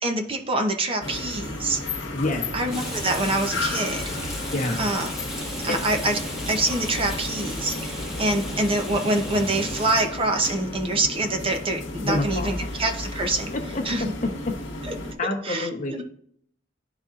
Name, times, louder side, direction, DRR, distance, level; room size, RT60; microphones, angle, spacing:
voice 1, 0.0-1.8 2.5-4.0 4.8-5.1 5.6-6.2 6.5-13.5 13.8-14.0 14.8-14.9 15.4-16.0, right 2 dB, 30° right, 4 dB, 0.7 m, -25 dB
sound 1, 1.0-15.1, left 2 dB, 75° left, 1.2 m, -33 dB
voice 2, 2.1-2.5 4.5-4.8 5.7-5.8 12.0-12.5 13.5-13.8 15.2-15.9, left 2 dB, 45° left, 3 dB, 0.9 m, -27 dB
Rain, 2.7-10.0, left 1 dB, ahead, 1.2 m, -35 dB
11.0 x 4.1 x 2.5 m, 0.64 s
head